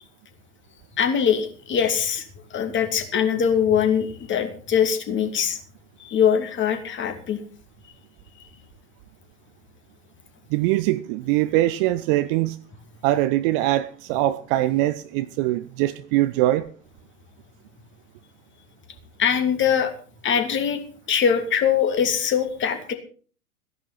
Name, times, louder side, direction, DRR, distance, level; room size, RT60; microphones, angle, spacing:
voice 1, 1.0-2.2 2.5-5.6 6.0-7.4 19.2-19.9 20.2-20.8 21.1-22.9, left 8 dB, 25° left, 2.8 m, -22 dB
voice 2, 10.5-12.6 13.0-16.7, right 15 dB, 40° right, 0.8 m, -22 dB
16.0 x 11.0 x 5.8 m
figure-of-eight pair, 90°, 44 cm